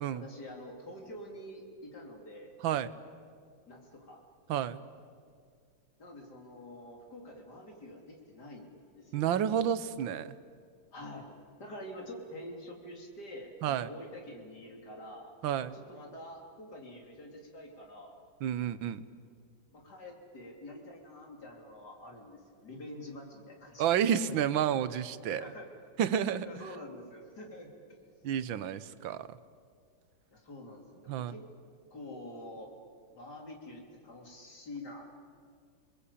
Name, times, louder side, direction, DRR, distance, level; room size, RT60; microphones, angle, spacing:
voice 1, 0.1-2.5 3.7-4.2 6.0-9.5 10.9-11.3 11.6-15.3 15.6-18.2 19.7-24.2 25.4-25.7 26.4-27.7 30.3-31.4 31.9-32.7 33.1-35.0, left 1 dB, 55° left, 1 dB, 3.9 m, -47 dB
voice 2, 4.5-4.8 9.1-10.3 13.6-13.9 15.4-15.8 18.4-19.0 23.8-25.4 26.0-26.5 28.2-29.4 31.1-31.3, right 9 dB, 85° right, 14 dB, 1.6 m, -30 dB
28.0 x 21.0 x 8.5 m, 2.1 s
omnidirectional pair, 2.1 m